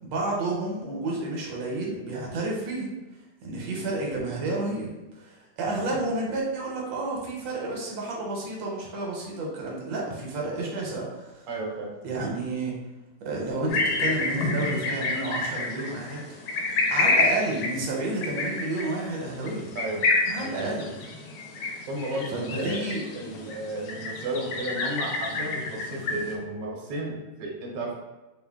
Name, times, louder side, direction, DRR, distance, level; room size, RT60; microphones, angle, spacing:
voice 1, 0.0-2.9 3.4-11.5 12.0-12.7 13.2-16.2 16.9-19.7 20.3-20.9 22.3-23.0, right 2 dB, 90° right, -2 dB, 1.5 m, -30 dB
voice 2, 11.5-11.9 19.7-20.0 20.4-20.9 21.8-28.0, right 1 dB, 70° right, -2 dB, 1.4 m, -33 dB
sound 1, 13.7-26.4, left 3 dB, 70° left, 1.1 m, -29 dB
3.8 x 2.1 x 3.4 m, 1.1 s
omnidirectional pair, 2.0 m